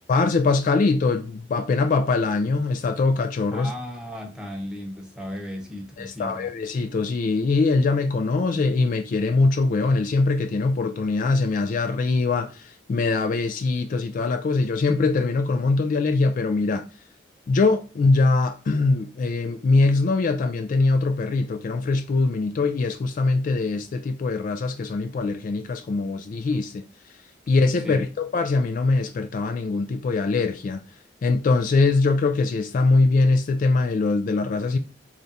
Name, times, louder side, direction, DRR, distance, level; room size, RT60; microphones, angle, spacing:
voice 1, 0.1-3.7 6.0-16.9 17.5-26.8 27.5-30.8 31.2-34.8, left 3 dB, 45° left, 0.3 m, -22 dB
voice 2, 3.5-6.5 27.8-28.0, left 1 dB, 5° right, 0.9 m, -35 dB
3.3 x 2.5 x 4.0 m
head